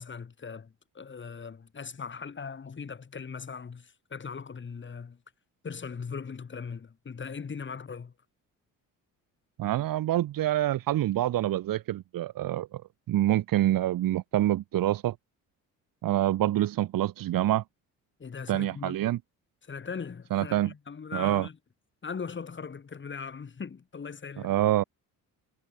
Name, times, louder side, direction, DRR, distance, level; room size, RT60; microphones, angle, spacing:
voice 1, 0.0-5.2 5.6-8.1 18.2-19.0 19.6-21.6 22.0-24.5, left 5 dB, 35° left, 5.5 m, -39 dB
voice 2, 9.6-12.8 13.1-15.1 16.0-17.6 18.5-19.2 20.3-20.7 21.1-21.5 24.4-24.8, right 13 dB, 75° right, 3.0 m, -26 dB
cardioid pair, 110°, 34 cm